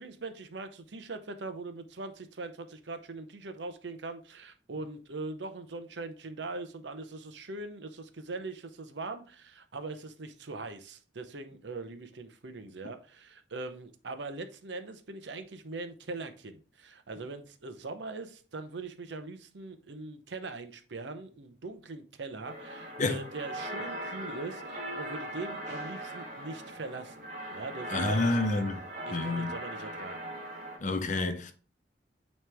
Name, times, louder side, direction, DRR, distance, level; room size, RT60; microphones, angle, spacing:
voice 1, 0.0-27.2 27.5-28.4 29.1-30.2, right 3 dB, 85° right, 0.8 m, -41 dB
sound 1, 22.4-30.8, right 1 dB, 45° right, 1.5 m, -40 dB
voice 2, 27.9-28.8 29.1-29.5 30.8-31.5, left 2 dB, 45° left, 0.7 m, -29 dB
9.1 x 3.2 x 3.4 m
head